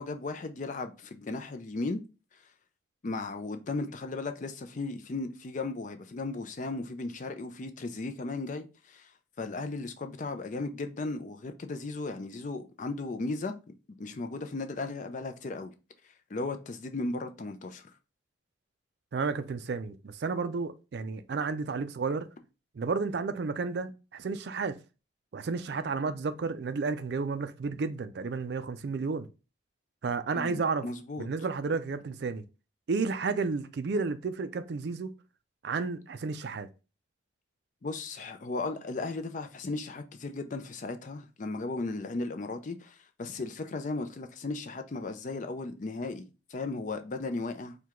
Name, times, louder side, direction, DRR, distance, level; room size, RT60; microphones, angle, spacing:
voice 1, 0.0-2.0 3.0-9.1 9.4-13.5 14.0-15.7 16.3-17.9 30.3-31.3 37.8-47.8, left 3 dB, 40° left, 0.4 m, -36 dB
voice 2, 19.1-22.3 22.7-24.8 25.3-29.3 30.0-30.8 31.2-32.4 32.9-35.1 35.6-36.7, right 4 dB, 60° right, 0.4 m, -32 dB
4.6 x 2.2 x 3.6 m
head